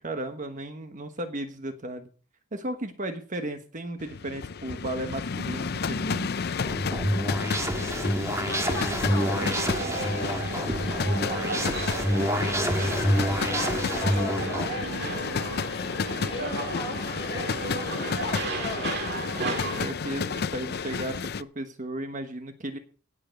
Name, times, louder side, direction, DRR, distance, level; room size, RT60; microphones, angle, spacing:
voice 1, 0.0-2.1 2.5-6.3 19.3-22.8, right 1 dB, 40° right, 7 dB, 1.3 m, -35 dB
sound 1, 4.0-21.4, left 5 dB, 55° left, 0.5 m, -31 dB
sound 2, 6.7-14.7, equal, 15° right, 1.6 m, -28 dB
voice 2, 8.1-9.4 9.9-11.6 12.1-15.0 15.6-18.9 19.3-19.9, left 2 dB, 25° left, 0 dB, 6.1 m, -39 dB
sound 3, 9.0-19.9, right 3 dB, 55° right, 1.8 m, -35 dB
17.5 x 6.9 x 5.3 m, 0.39 s
head